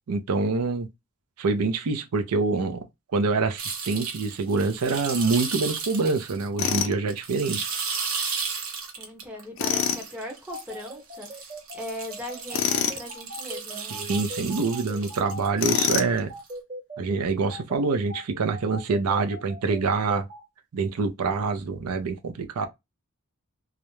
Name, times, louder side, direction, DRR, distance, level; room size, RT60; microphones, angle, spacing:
voice 1, 0.1-0.9 1.4-2.8 3.1-7.7 13.8-16.3 17.0-20.3 20.7-22.7, right 4 dB, 90° right, 0.5 m, -26 dB
sound 1, 3.6-6.7 7.1-9.4 9.8-15.8 16.5-16.6, right 5 dB, 70° right, 0.9 m, -34 dB
Tools, 6.6-7.0 9.6-10.0 12.5-13.0 15.6-16.2, left 7 dB, 60° left, 0.4 m, -25 dB
voice 2, 9.0-11.4 11.7-14.0, left 1 dB, 5° right, 0.6 m, -39 dB
sound 2, 10.5-20.4, right 1 dB, 30° right, 0.9 m, -40 dB
2.4 x 2.1 x 2.9 m
head